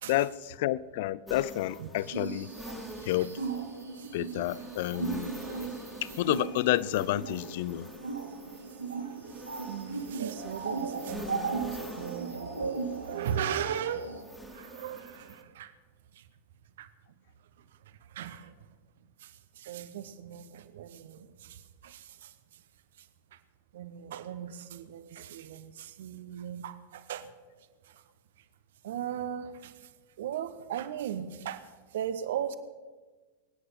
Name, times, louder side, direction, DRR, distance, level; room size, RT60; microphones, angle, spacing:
voice 1, 0.1-2.5 3.1-3.3 4.1-5.3 6.2-7.9, left 15 dB, 50° left, 0.4 m, -29 dB
sound 1, 1.3-15.4, equal, 5° left, 2.1 m, -46 dB
sound 2, 2.0-14.2, right 4 dB, 80° right, 2.7 m, -37 dB
voice 2, 9.3-14.1 14.5-15.7 16.1-16.3 16.8-16.9 17.9-18.5 19.2-22.6 23.0-23.4 23.7-27.3 27.8-28.0 28.8-29.9 30.2-32.5, right 9 dB, 60° right, 1.0 m, -38 dB
22.5 x 9.8 x 5.8 m
figure-of-eight pair, 90°, 0 cm